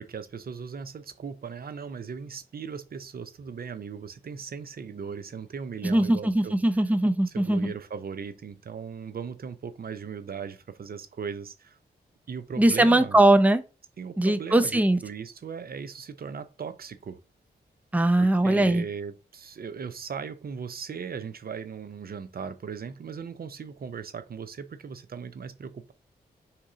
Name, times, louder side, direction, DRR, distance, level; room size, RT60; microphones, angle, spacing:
voice 1, 0.0-6.6 7.3-11.8 12.3-13.2 14.0-17.2 18.2-25.9, right 6 dB, 55° right, 0.6 m, -38 dB
voice 2, 5.8-7.7 12.6-13.6 14.2-15.0 17.9-18.9, right 1 dB, 10° right, 0.7 m, -21 dB
3.6 x 2.9 x 4.8 m
cardioid pair, 45°, 18 cm